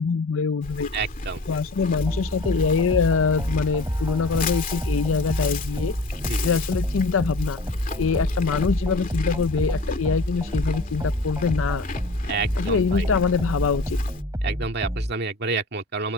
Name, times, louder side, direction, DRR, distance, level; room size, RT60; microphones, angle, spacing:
voice 1, 0.0-0.9 1.5-5.9 6.4-7.6 8.0-11.8 12.6-14.0, left 5 dB, 75° left, 0.5 m, -24 dB
Livestock farm animals working animals, 0.6-14.2, left 2 dB, 45° left, 2.5 m, -33 dB
voice 2, 0.9-1.4 6.2-6.6 12.3-13.1 14.4-16.1, right 4 dB, 55° right, 2.2 m, -29 dB
sound 1, 2.0-15.1, equal, 15° right, 4.8 m, -29 dB
open air
head